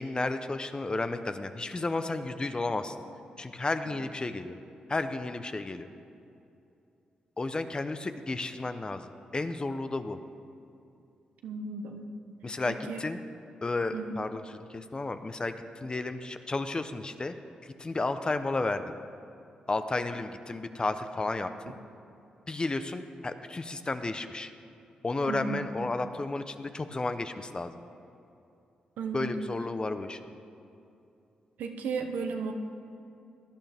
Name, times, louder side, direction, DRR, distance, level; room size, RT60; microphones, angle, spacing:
voice 1, 0.0-3.0 3.4-4.6 4.9-5.9 7.4-10.2 12.4-13.2 13.6-17.3 17.6-18.9 19.7-21.7 22.5-24.5 25.0-27.8 29.1-30.2, left 2 dB, 30° left, 9 dB, 0.8 m, -32 dB
voice 2, 11.4-12.1 12.7-13.0 13.9-14.2 25.3-25.7 29.0-29.5 31.6-32.5, right 4 dB, 85° right, 4 dB, 1.0 m, -34 dB
17.0 x 11.0 x 3.5 m, 2.7 s
supercardioid pair, 55°, 3 cm